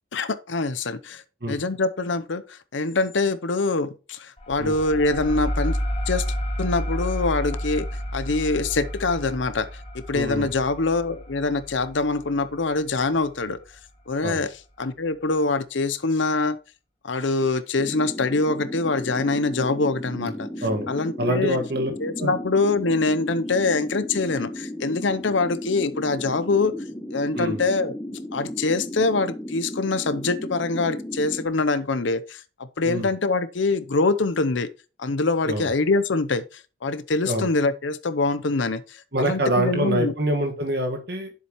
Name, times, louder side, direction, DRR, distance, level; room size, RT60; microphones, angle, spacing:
voice 1, 0.1-5.8 6.1-6.2 6.6-7.9 8.1-9.7 9.9-13.6 14.1-14.5 14.8-16.6 17.0-20.5 20.9-21.6 22.0-26.7 27.1-27.9 28.3-34.7 35.0-40.1, left 3 dB, 70° left, 0.7 m, -24 dB
sound 1, 4.4-13.6, equal, 30° left, 1.5 m, -31 dB
voice 2, 10.1-10.5 14.2-14.4 20.2-20.3 20.6-20.9 21.2-21.9 22.2-22.3 27.4-27.6 32.8-33.1 35.4-35.7 37.3-37.5 39.1-41.3, right 1 dB, 55° right, 1.7 m, -25 dB
sound 2, 17.8-31.5, left 1 dB, 15° left, 1.2 m, -35 dB
10.5 x 7.5 x 3.1 m
head